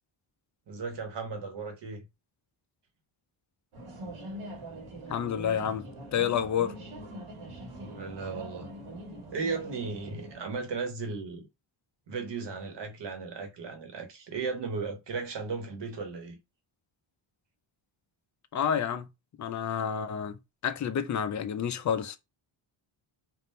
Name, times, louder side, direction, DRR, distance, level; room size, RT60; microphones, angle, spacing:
voice 1, 0.7-2.0 7.7-8.7 9.3-11.5 12.1-16.4, right 4 dB, 55° right, 1.3 m, -36 dB
sound 1, 3.7-10.4, right 1 dB, 80° right, 1.5 m, -43 dB
voice 2, 5.1-5.8 6.1-6.7 18.5-19.1 19.4-22.2, left 8 dB, 40° left, 0.4 m, -29 dB
3.5 x 2.5 x 4.2 m
wide cardioid pair, 160°, 49 cm